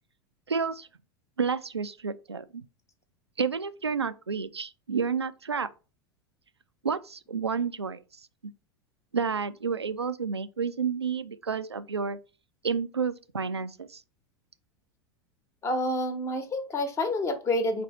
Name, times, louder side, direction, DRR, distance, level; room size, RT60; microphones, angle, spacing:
voice 1, 0.5-0.9 1.4-2.6 3.4-5.7 6.8-8.5 9.1-12.2 12.6-14.0, right 5 dB, 90° right, 0.4 m, -30 dB
voice 2, 15.6-17.8, left 1 dB, 20° left, 1.0 m, -28 dB
4.2 x 2.7 x 4.3 m
figure-of-eight pair, 85°, 13 cm